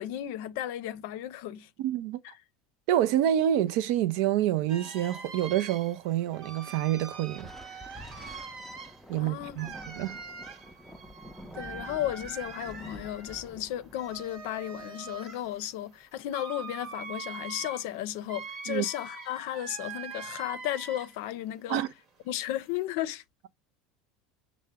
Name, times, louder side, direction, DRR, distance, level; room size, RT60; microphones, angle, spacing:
voice 1, 0.0-1.7 9.2-9.7 11.5-21.8 22.3-23.2, left 13 dB, 75° left, 0.5 m, -34 dB
voice 2, 1.8-2.2 2.9-7.9 9.1-10.2 18.7-18.9 21.7-21.9, right 12 dB, 70° right, 0.5 m, -27 dB
sound 1, 4.7-21.3 21.7-22.8, right 5 dB, 50° right, 1.1 m, -44 dB
Thunder, 7.3-16.0, equal, ahead, 0.5 m, -49 dB
5.5 x 2.1 x 3.4 m
supercardioid pair, 105°, 0 cm